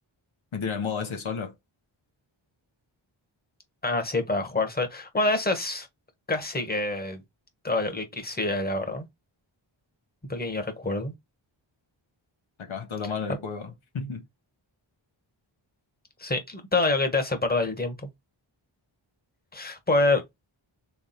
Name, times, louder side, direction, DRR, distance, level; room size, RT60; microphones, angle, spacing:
voice 1, 0.5-1.5 12.7-14.2, left 5 dB, 75° left, 1.1 m, -32 dB
voice 2, 3.8-5.9 6.3-7.2 7.6-9.1 10.3-11.1 16.2-17.9 19.5-20.2, left 2 dB, 20° left, 1.4 m, -26 dB
3.5 x 3.4 x 4.2 m
wide cardioid pair, 60°, 48 cm